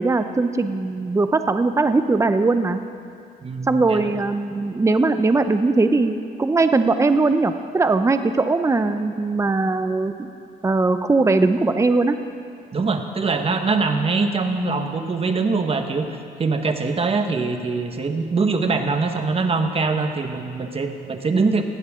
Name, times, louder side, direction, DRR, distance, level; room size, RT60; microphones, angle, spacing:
voice 1, 0.0-2.8 3.7-10.3 10.6-12.2, right 3 dB, 15° right, 9 dB, 0.8 m, -20 dB
voice 2, 3.4-4.1 12.7-16.1 16.4-21.6, right 4 dB, 35° right, 6 dB, 1.5 m, -23 dB
20.0 x 16.0 x 3.8 m, 2.4 s
supercardioid pair, 80°, 18 cm